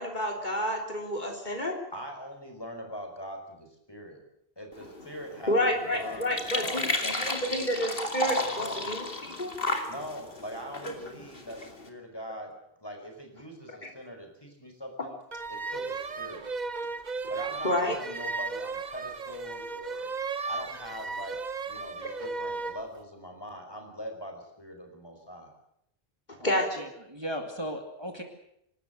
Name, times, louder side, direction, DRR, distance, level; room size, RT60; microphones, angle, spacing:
voice 1, 0.0-1.8 5.5-9.5 13.8-13.9 17.6-18.0 26.4-26.9, equal, 45° left, 2 dB, 3.6 m, -29 dB
voice 2, 1.9-4.2 4.6-7.7 8.2-8.9 9.9-12.5 12.8-15.1 15.5-16.4 17.3-20.1 20.4-21.4 21.7-25.5, equal, 25° left, 3 dB, 5.1 m, -42 dB
sound 1, 4.7-11.9, left 1 dB, 65° left, 2.9 m, -34 dB
sound 2, 15.3-22.8, right 4 dB, 45° right, 1.1 m, -35 dB
voice 3, 26.4-28.2, equal, 25° right, 4 dB, 2.3 m, -37 dB
26.0 x 13.0 x 9.3 m, 0.76 s
omnidirectional pair, 1.0 m